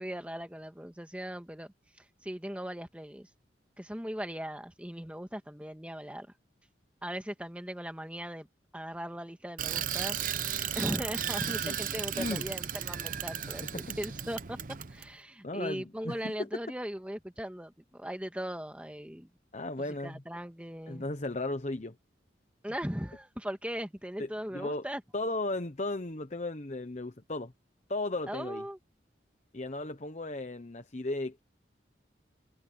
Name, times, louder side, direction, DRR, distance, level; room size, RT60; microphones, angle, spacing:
voice 1, 0.0-3.3 3.8-6.3 7.0-8.5 8.7-10.2 10.8-14.6 14.9-19.3 19.8-21.1 22.6-25.0 28.3-28.8, equal, 5° right, 1.8 m, -39 dB
Bicycle, 9.6-15.1, right 9 dB, 50° right, 0.8 m, -35 dB
voice 2, 15.4-16.5 19.5-20.2 20.9-22.0 24.2-24.9 25.1-27.5 27.9-28.6 29.5-31.4, left 2 dB, 40° left, 1.0 m, -35 dB
head